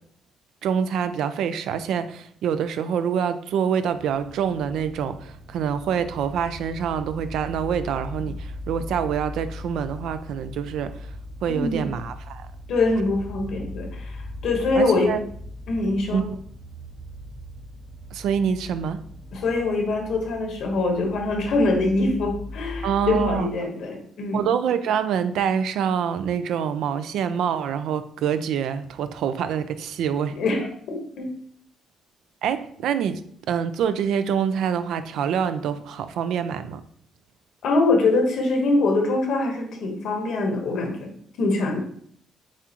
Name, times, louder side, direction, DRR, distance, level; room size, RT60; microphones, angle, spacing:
voice 1, 0.6-10.9 11.4-12.5 14.8-15.2 16.1-16.4 18.1-19.0 22.8-23.5 24.3-30.4 32.4-33.2 33.5-36.8, right 8 dB, 80° right, 11 dB, 0.3 m, -26 dB
sound 1, 4.0-23.4, left 1 dB, 50° right, 1.5 m, -39 dB
voice 2, 11.5-11.9 12.7-15.2 15.7-16.2 19.3-24.4 30.3-31.3 37.6-41.8, left 2 dB, 75° left, 2 dB, 1.1 m, -24 dB
7.3 x 2.4 x 2.9 m, 0.62 s
cardioid pair, 90°, 0 cm